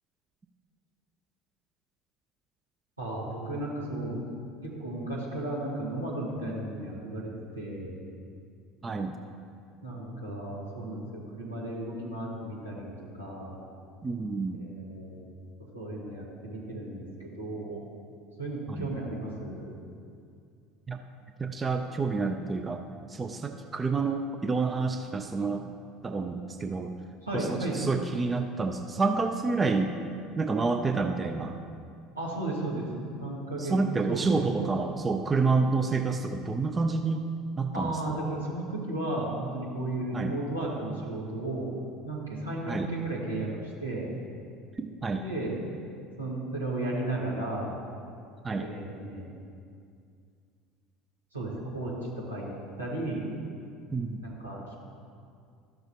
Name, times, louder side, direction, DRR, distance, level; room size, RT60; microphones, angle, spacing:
voice 1, 3.0-4.2 4.6-8.0 9.8-13.6 14.5-15.2 15.7-17.9 18.4-19.8 27.2-27.8 32.2-33.7 34.1-34.7 37.7-41.7 42.1-44.1 45.2-45.6 46.2-47.8 48.6-49.3 51.3-52.5 52.8-53.3 54.2-54.7, right 2 dB, 85° right, -6 dB, 1.7 m, -34 dB
voice 2, 8.8-9.2 14.0-14.6 18.7-18.9 20.9-21.0 21.4-22.8 23.1-25.6 26.0-26.9 27.3-29.9 30.4-31.6 33.6-37.2 37.6-38.2 40.1-40.3 42.7-42.9 44.8-45.2 48.4-48.7 53.9-54.2, right 4 dB, 20° right, 6 dB, 0.4 m, -28 dB
13.5 x 6.7 x 2.8 m, 2.3 s
figure-of-eight pair, 65°, 0 cm